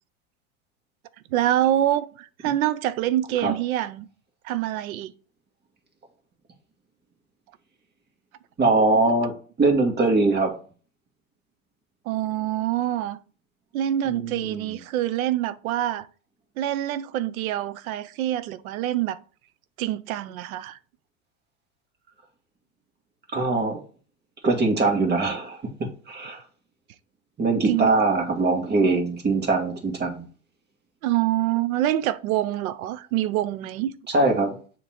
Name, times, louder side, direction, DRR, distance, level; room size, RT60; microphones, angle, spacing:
voice 1, 1.3-4.1 4.4-5.1 12.1-13.2 13.7-16.1 16.6-19.2 19.8-20.8 27.7-27.9 31.0-33.9, right 13 dB, 75° right, 0.7 m, -25 dB
voice 2, 8.6-9.3 9.6-10.5 14.1-14.6 23.3-23.8 24.4-26.4 27.4-30.2 34.1-34.6, right 3 dB, 25° right, 1.7 m, -22 dB
7.1 x 3.0 x 4.3 m
hypercardioid pair, 110°, 42 cm